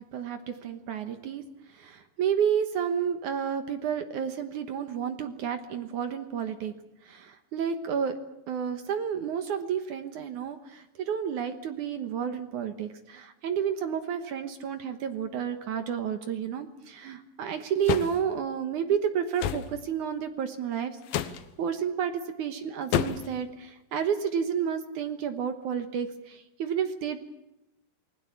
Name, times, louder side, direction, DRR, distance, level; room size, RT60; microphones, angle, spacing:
voice 1, 0.1-1.4 1.7-6.7 7.0-8.2 8.5-27.2, right 8 dB, 65° right, 8 dB, 2.2 m, -31 dB
sound 1, 17.9-18.2 19.4-19.7 21.1-21.4 22.9-23.3, left 10 dB, 70° left, 2.6 m, -28 dB
28.0 x 20.5 x 7.1 m, 0.95 s
omnidirectional pair, 4.7 m